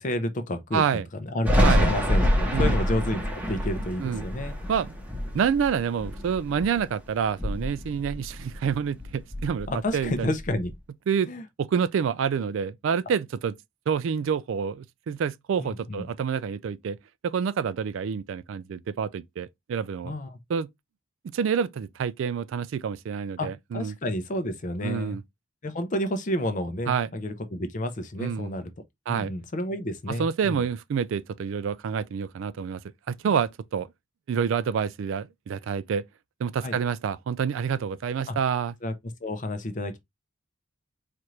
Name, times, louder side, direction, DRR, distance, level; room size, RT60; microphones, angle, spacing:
voice 1, 0.0-3.2 3.5-4.5 9.7-10.7 11.3-11.5 15.6-16.1 20.0-20.4 23.4-23.5 23.7-25.2 25.6-28.7 29.1-30.6 36.6-36.8 38.3-38.4 38.8-38.9 39.2-40.0, left 1 dB, 35° left, 0.6 m, -30 dB
voice 2, 0.7-1.1 1.6-1.9 2.5-2.8 4.0-4.2 4.7-4.9 5.3-9.7 9.9-10.3 11.1-11.3 11.6-13.5 13.9-17.0 17.2-20.1 20.5-20.7 21.3-23.9 24.8-25.2 26.9-27.1 28.2-28.5 29.1-29.3 30.1-32.8 33.1-33.9 34.3-36.0 36.4-38.7, right 7 dB, 65° right, 0.3 m, -27 dB
Thunder, 1.4-6.9 7.2-8.7 9.0-10.7, equal, 5° right, 0.8 m, -26 dB
4.3 x 2.5 x 3.0 m
head